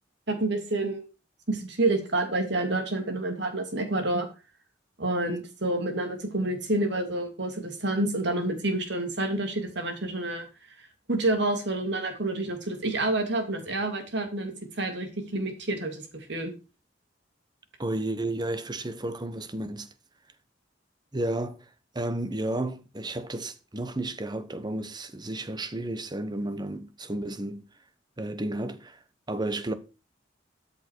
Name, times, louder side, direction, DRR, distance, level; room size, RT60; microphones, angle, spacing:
voice 1, 0.3-1.1 1.5-4.3 5.0-10.4 10.8-16.5, right 2 dB, 65° right, 2.7 m, -28 dB
voice 2, 17.8-19.9 21.1-21.6 21.9-27.6 28.2-29.0 29.3-29.7, right 1 dB, 25° right, 1.0 m, -32 dB
13.0 x 7.0 x 4.5 m
head